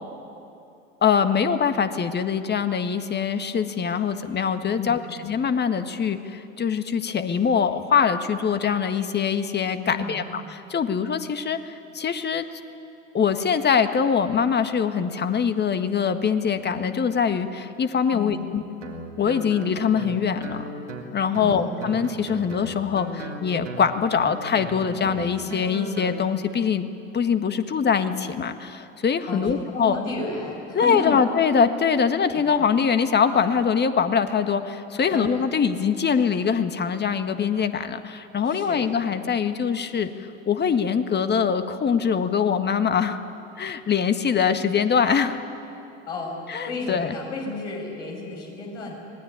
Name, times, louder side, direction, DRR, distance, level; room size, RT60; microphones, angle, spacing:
voice 1, 1.0-12.4 13.1-18.6 19.2-20.6 21.1-26.9 27.1-30.0 30.7-43.2 43.6-45.4 46.5-47.1, left 6 dB, 30° left, 9 dB, 1.7 m, -23 dB
voice 2, 4.7-5.0 9.9-10.3 18.1-18.5 21.3-21.9 29.3-31.2 32.3-32.4 35.1-35.3 38.4-38.8 46.1-48.9, left 2 dB, 75° left, -1 dB, 7.5 m, -33 dB
Guitar, 18.8-26.2, right 2 dB, 90° right, 2.9 m, -37 dB
25.0 x 19.5 x 9.8 m, 2.8 s
figure-of-eight pair, 70°, 35 cm